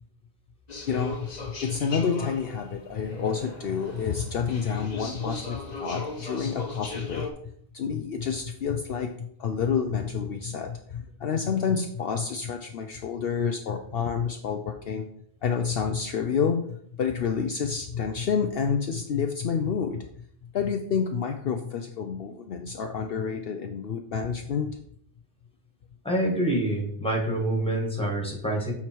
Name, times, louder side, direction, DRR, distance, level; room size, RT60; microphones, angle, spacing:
sound 1, 0.7-7.3, left 3 dB, 40° left, 1.1 m, -38 dB
voice 1, 0.9-1.3 1.6-7.3 7.7-15.0 15.4-20.0 20.5-24.7, left 6 dB, 65° left, 4 dB, 0.8 m, -29 dB
voice 2, 26.0-28.7, right 1 dB, 5° left, 0 dB, 1.8 m, -26 dB
7.2 x 4.7 x 4.5 m, 0.66 s
omnidirectional pair, 1.1 m